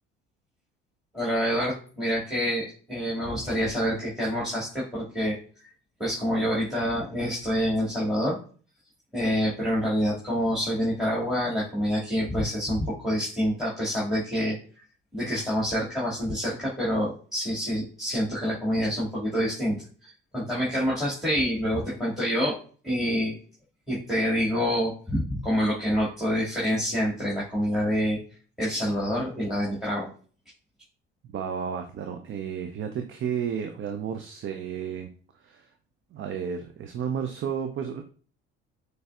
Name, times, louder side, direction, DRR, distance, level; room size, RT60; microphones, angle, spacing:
voice 1, 1.1-5.4 6.0-8.4 9.1-14.6 15.1-22.6 22.8-23.4 23.9-28.2 28.6-30.1, equal, ahead, -6 dB, 2.1 m, -27 dB
voice 2, 31.3-35.1 35.4-35.7 36.1-38.0, right 7 dB, 45° right, 6 dB, 0.6 m, -32 dB
6.3 x 3.3 x 2.4 m, 0.40 s
hypercardioid pair, 65°, 29 cm